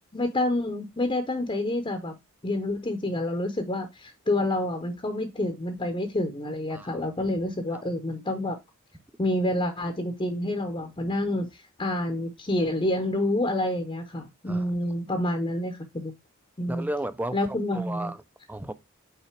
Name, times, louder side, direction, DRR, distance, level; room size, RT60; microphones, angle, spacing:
voice 1, 0.1-2.1 2.4-8.6 9.2-16.1 16.6-16.9 17.3-18.1, left 1 dB, 25° left, 0.7 m, -28 dB
voice 2, 6.7-7.0 7.7-7.8 14.5-14.7 16.7-18.2 18.5-18.7, right 1 dB, 10° right, 0.4 m, -34 dB
5.7 x 3.9 x 4.4 m
head